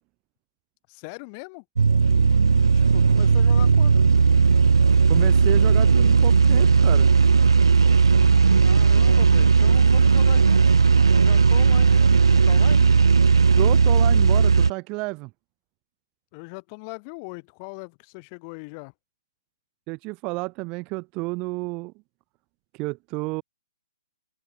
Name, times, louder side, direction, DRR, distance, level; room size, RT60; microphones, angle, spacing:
voice 1, 0.9-1.6 2.0-4.0 8.6-10.8 11.1-12.9 16.3-18.9, left 34 dB, 35° left, 7.8 m, -40 dB
sound 1, 1.8-14.7, right 5 dB, 75° right, 0.8 m, -16 dB
voice 2, 5.1-7.1 13.6-15.3 19.9-21.9 22.7-23.4, right 26 dB, 30° right, 0.6 m, -31 dB
open air
figure-of-eight pair, 130°, 3 cm